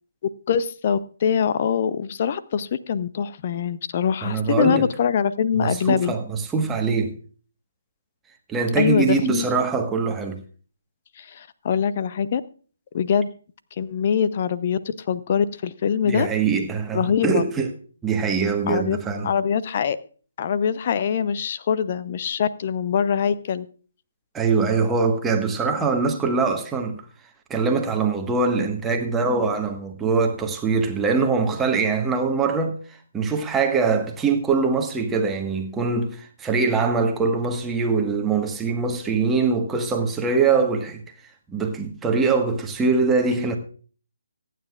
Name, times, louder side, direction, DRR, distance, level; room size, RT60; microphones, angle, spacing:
voice 1, 0.5-6.1 8.8-9.4 11.2-12.4 12.9-13.3 13.8-16.3 16.9-17.4 18.7-19.0 19.2-20.0 20.4-23.7, left 7 dB, 35° left, 0.7 m, -23 dB
voice 2, 4.2-4.9 5.5-7.2 8.5-10.4 16.0-17.7 18.0-19.3 24.3-27.0 27.5-41.0 41.5-43.6, right 4 dB, 10° right, 1.4 m, -23 dB
25.0 x 9.3 x 2.4 m
figure-of-eight pair, 145°, 0 cm